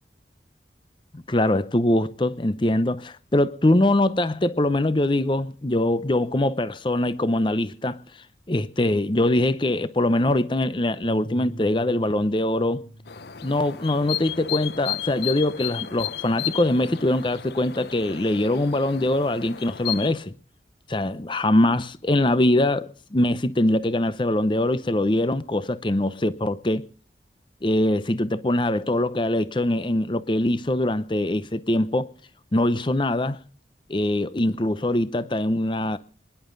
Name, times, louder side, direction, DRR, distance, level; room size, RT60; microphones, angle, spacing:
voice 1, 1.1-8.0 8.5-12.8 13.4-20.3 20.9-26.9 27.6-32.1 32.5-33.4 33.9-36.0, left 1 dB, 25° left, 0.7 m, -23 dB
sound 1, 11.0-17.3, equal, 80° left, 2.7 m, -44 dB
sound 2, 13.1-20.1, left 11 dB, 65° left, 0.7 m, -34 dB
25.5 x 11.0 x 3.9 m
head